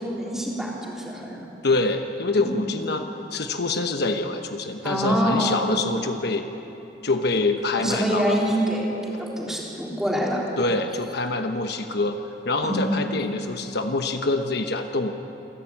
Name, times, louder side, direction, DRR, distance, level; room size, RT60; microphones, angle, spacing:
voice 1, 0.0-1.5 2.4-2.6 4.8-5.6 7.7-10.4 12.6-12.8, equal, 5° right, -4 dB, 3.7 m, -25 dB
voice 2, 1.6-6.4 7.0-8.4 10.6-12.2 12.4-15.1, left 3 dB, 65° left, 6 dB, 1.1 m, -25 dB
27.5 x 12.0 x 8.8 m, 3.0 s
head